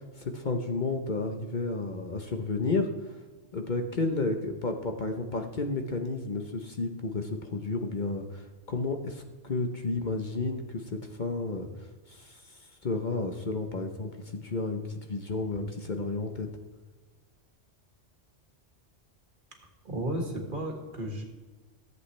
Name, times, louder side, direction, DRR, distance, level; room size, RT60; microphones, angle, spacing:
voice 1, 0.2-3.2 3.5-16.5, left 3 dB, 45° left, 5 dB, 0.9 m, -32 dB
voice 2, 5.3-5.7 19.8-21.2, right 1 dB, 50° right, 2 dB, 1.9 m, -34 dB
14.5 x 8.1 x 3.3 m, 1.3 s
omnidirectional pair, 1.1 m